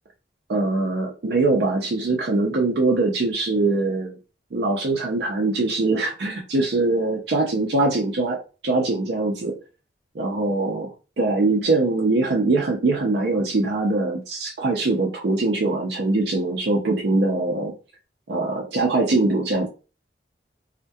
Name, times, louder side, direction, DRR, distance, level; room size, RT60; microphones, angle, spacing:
voice 1, 0.5-4.1 4.5-9.5 10.1-17.7 18.3-19.7, right 2 dB, 70° right, 0 dB, 0.5 m, -22 dB
2.2 x 2.1 x 2.6 m, 0.33 s
head